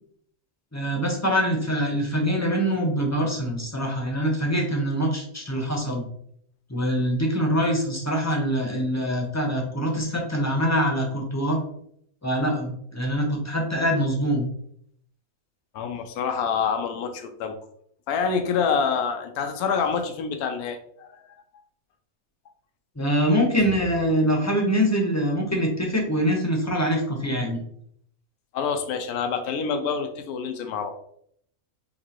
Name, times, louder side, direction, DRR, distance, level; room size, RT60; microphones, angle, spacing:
voice 1, 0.7-6.1 6.7-11.6 12.2-14.5 23.0-27.6, equal, 15° left, 0 dB, 0.7 m, -24 dB
voice 2, 15.7-17.5 18.1-21.4 23.6-23.7 28.5-30.9, left 6 dB, 90° left, 6 dB, 1.1 m, -27 dB
5.4 x 3.0 x 2.9 m, 0.68 s
omnidirectional pair, 1.5 m